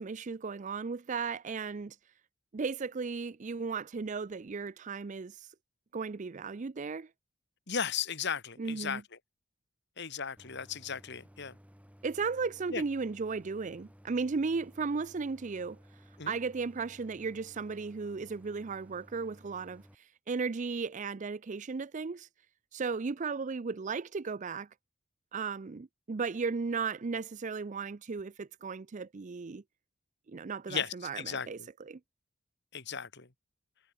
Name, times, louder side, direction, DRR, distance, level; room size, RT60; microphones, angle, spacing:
voice 1, 0.0-2.0 2.5-5.5 5.9-7.1 8.6-9.0 12.0-15.8 16.3-22.3 22.7-24.7 25.3-29.6 30.3-32.0, right 4 dB, 35° right, 0.4 m, -35 dB
voice 2, 7.7-9.0 10.0-11.6 12.7-12.8 16.2-16.3 30.7-31.7 32.7-33.3, left 7 dB, 55° left, 2.2 m, -36 dB
Idling, 10.4-19.9, equal, 5° right, 3.5 m, -57 dB
head